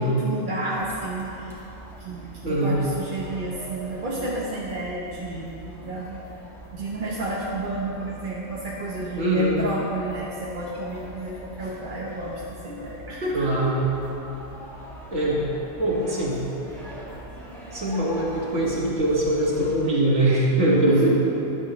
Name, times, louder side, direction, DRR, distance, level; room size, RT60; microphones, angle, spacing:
voice 1, 0.0-1.6 2.0-6.2 6.7-13.6 20.8-21.1, right 1 dB, 40° right, -5 dB, 1.1 m, -31 dB
sound 1, 0.7-19.8, right 1 dB, ahead, 2.1 m, -43 dB
voice 2, 2.4-2.7 9.2-9.6 13.3-13.8 15.1-15.4 15.8-16.4 17.7-21.1, right 1 dB, 65° right, -5 dB, 2.4 m, -22 dB
13.0 x 11.0 x 3.1 m, 3.0 s
omnidirectional pair, 1.4 m